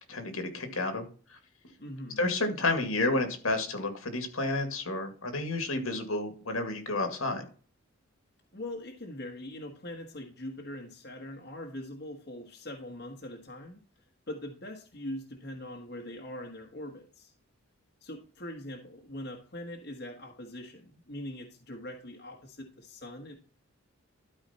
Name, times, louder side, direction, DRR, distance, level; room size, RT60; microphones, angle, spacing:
voice 1, 0.1-1.0 2.2-7.4, left 2 dB, 75° left, 6 dB, 2.1 m, -30 dB
voice 2, 1.8-2.2 8.5-13.8 14.3-17.3 18.0-23.3, left 1 dB, 50° left, 1 dB, 1.4 m, -42 dB
12.5 x 4.9 x 4.3 m, 0.39 s
head